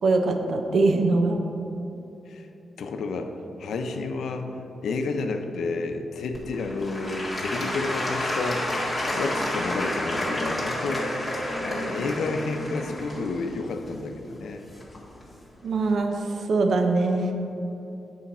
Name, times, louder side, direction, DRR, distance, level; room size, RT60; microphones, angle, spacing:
voice 1, 0.0-1.4 15.6-17.3, right 3 dB, 65° right, 5 dB, 0.7 m, -22 dB
voice 2, 2.8-11.2 11.5-14.6, left 3 dB, 85° left, 5 dB, 0.6 m, -31 dB
Applause / Crowd, 6.3-15.2 15.8-15.9, left 1 dB, 5° left, 1.7 m, -30 dB
sound 1, 8.4-13.2, left 1 dB, 25° left, 1.1 m, -43 dB
8.3 x 5.7 x 4.3 m, 3.0 s
wide cardioid pair, 140°, 0 cm